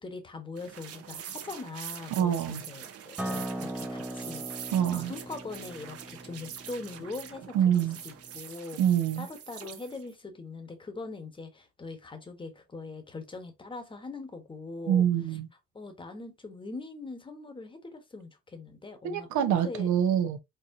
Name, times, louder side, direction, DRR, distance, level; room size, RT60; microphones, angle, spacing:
voice 1, 0.0-4.7 4.9-8.8 9.2-15.0 15.7-19.9, left 3 dB, 15° left, 1.3 m, -42 dB
sound 1, 0.6-10.1, right 9 dB, 50° right, 1.0 m, -44 dB
voice 2, 2.1-2.6 4.7-5.1 7.5-8.0 8.8-9.3 14.9-15.5 19.0-20.4, right 9 dB, 65° right, 1.2 m, -25 dB
Acoustic guitar, 3.2-8.4, right 1 dB, 5° right, 0.6 m, -39 dB
4.6 x 4.2 x 2.7 m
cardioid pair, 135°, 31 cm